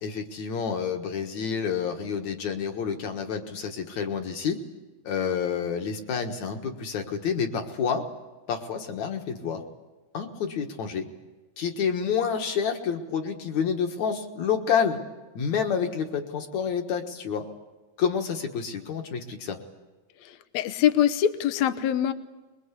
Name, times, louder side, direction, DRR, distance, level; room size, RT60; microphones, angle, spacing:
voice 1, 0.0-4.6 5.0-8.1 8.5-9.6 10.1-11.1 11.6-15.0 15.4-17.4 18.0-19.6, left 6 dB, 55° left, 5 dB, 2.4 m, -28 dB
voice 2, 20.2-22.1, left 10 dB, 75° left, 10 dB, 1.7 m, -24 dB
24.5 x 22.0 x 8.3 m, 1.2 s
omnidirectional pair, 4.5 m